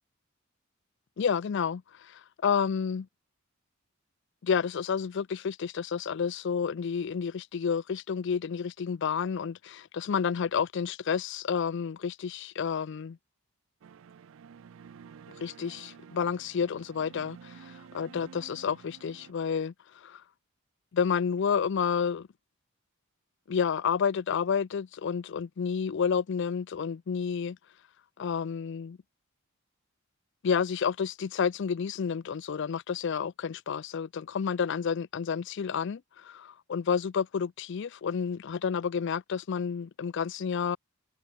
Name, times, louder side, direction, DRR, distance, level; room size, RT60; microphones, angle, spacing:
voice 1, 1.2-3.1 4.4-13.2 15.4-20.2 20.9-22.3 23.5-27.6 28.2-29.0 30.4-40.8, left 6 dB, 55° left, 0.4 m, -30 dB
sound 1, 13.8-19.3, right 7 dB, 65° right, 0.4 m, -51 dB
head